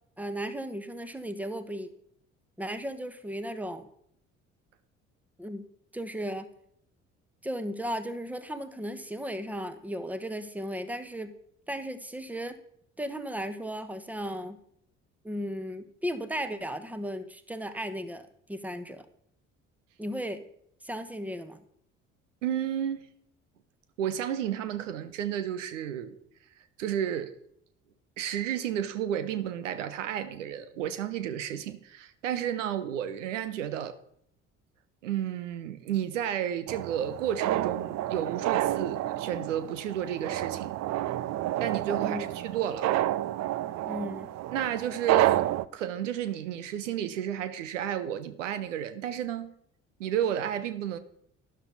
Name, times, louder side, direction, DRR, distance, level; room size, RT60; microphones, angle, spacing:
voice 1, 0.2-1.9 2.6-3.9 5.4-5.7 5.9-6.5 7.4-11.3 11.7-12.6 13.0-14.6 15.2-18.2 18.5-19.1 20.0-20.4 20.8-21.6 42.0-42.3 43.8-44.3, equal, 5° right, 1.2 m, -35 dB
voice 2, 22.4-23.1 24.0-26.2 26.8-27.3 28.2-34.0 35.0-40.8 41.6-42.9 44.5-49.5 50.0-51.0, right 10 dB, 75° right, 0.8 m, -32 dB
sound 1, 36.7-45.7, right 14 dB, 45° right, 0.5 m, -29 dB
12.5 x 11.0 x 4.0 m
figure-of-eight pair, 50°, 37 cm